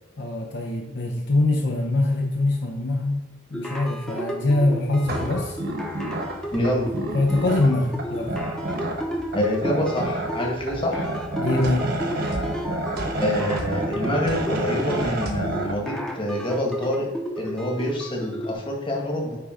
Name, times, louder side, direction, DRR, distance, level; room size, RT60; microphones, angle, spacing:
voice 1, 0.2-3.2 3.5-5.6 7.1-8.3 11.4-11.9, left 2 dB, 55° left, 0 dB, 0.8 m, -23 dB
sound 1, 3.5-18.5, equal, 5° left, 0.8 m, -33 dB
sound 2, 5.0-15.8, right 1 dB, 50° right, 1.1 m, -30 dB
voice 2, 6.5-6.9 9.3-11.1 13.2-17.1 17.4-19.4, left 1 dB, 25° left, -1 dB, 1.6 m, -26 dB
9.3 x 3.5 x 5.0 m, 1.2 s
head